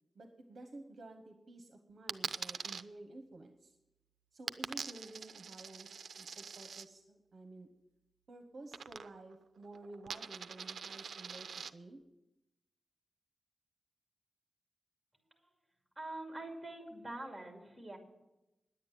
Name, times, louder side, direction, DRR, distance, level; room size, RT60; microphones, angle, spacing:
voice 1, 0.1-3.8 4.3-7.7 8.3-12.0, right 2 dB, 45° right, 6 dB, 1.0 m, -52 dB
Coin (dropping), 2.1-2.8 4.5-6.9 8.7-9.4 9.6-11.7, right 6 dB, 70° right, 0.5 m, -43 dB
voice 2, 16.0-18.0, right 1 dB, 5° right, 1 dB, 2.5 m, -44 dB
10.5 x 8.7 x 9.2 m, 0.97 s
wide cardioid pair, 175°, 0 cm